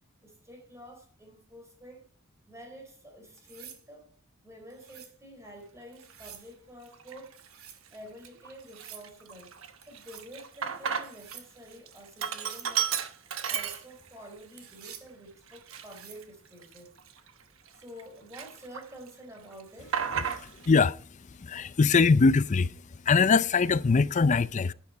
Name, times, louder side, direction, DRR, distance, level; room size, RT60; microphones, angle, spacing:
voice 1, 0.2-2.0 2.5-4.1 4.4-7.4 7.9-9.5 9.9-12.9 13.5-16.9 17.8-20.0, equal, 15° right, 4.2 m, -49 dB
sound 1, 3.4-3.8 4.7-5.2 6.0-6.5 7.3-7.8 8.6-9.1 9.8-10.3 11.0-11.5 12.3-12.7 13.4-13.8 14.6-15.1 15.7-16.2 18.2-18.4, right 9 dB, 90° right, 1.8 m, -49 dB
Sink (filling or washing), 6.1-6.3 6.9-7.5 7.9-8.0 8.2-11.4 11.7-14.3 14.7-14.8 15.5-18.0 18.3-19.1 19.4-20.7, right 8 dB, 70° right, 1.1 m, -34 dB
voice 2, 20.4-21.0 21.4-22.7 23.1-24.7, left 4 dB, 35° left, 0.4 m, -22 dB
11.0 x 9.8 x 4.5 m
head